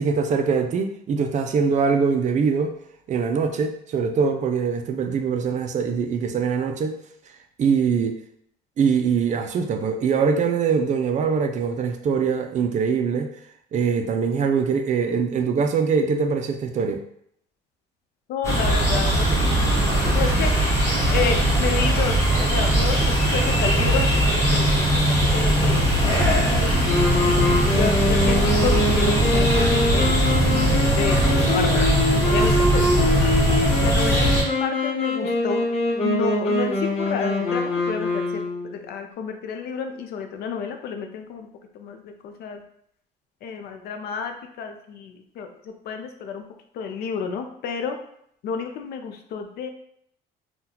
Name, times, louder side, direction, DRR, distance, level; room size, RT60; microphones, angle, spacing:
voice 1, 0.0-2.7 3.1-7.0 7.6-8.2 8.8-13.3 13.7-17.0, right 5 dB, 45° right, 6 dB, 0.4 m, -23 dB
voice 2, 18.3-20.5 21.1-26.7 27.3-27.4 27.7-30.2 31.0-31.9 32.3-32.9 33.8-34.3 34.6-35.7 36.0-41.5 41.7-42.6 43.4-46.4 46.7-48.0 48.4-49.7, left 6 dB, 70° left, 5 dB, 0.5 m, -30 dB
sound 1, 18.4-34.4, right 1 dB, 15° left, 1.2 m, -20 dB
sound 2, 26.8-38.7, left 2 dB, 40° left, 1.0 m, -24 dB
3.8 x 2.3 x 2.8 m, 0.70 s
cardioid pair, 110°, 17 cm